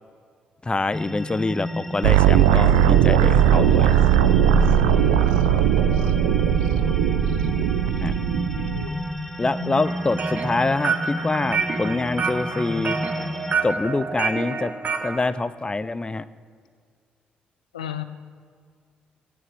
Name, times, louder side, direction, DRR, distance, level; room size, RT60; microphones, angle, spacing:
voice 1, 0.6-4.0 8.0-8.1 9.4-13.0 13.6-14.7 15.0-16.2, left 3 dB, 25° left, 15 dB, 0.7 m, -25 dB
sound 1, 0.9-13.5, equal, 5° left, 1.3 m, -31 dB
sound 2, 2.0-8.9, right 10 dB, 80° right, 0.5 m, -18 dB
voice 2, 8.5-8.9 9.4-9.8 17.7-18.0, left 10 dB, 90° left, 11 dB, 0.5 m, -36 dB
sound 3, 9.8-15.2, right 5 dB, 40° right, 1.6 m, -28 dB
16.0 x 9.4 x 7.5 m, 2.1 s
hypercardioid pair, 40°, 4 cm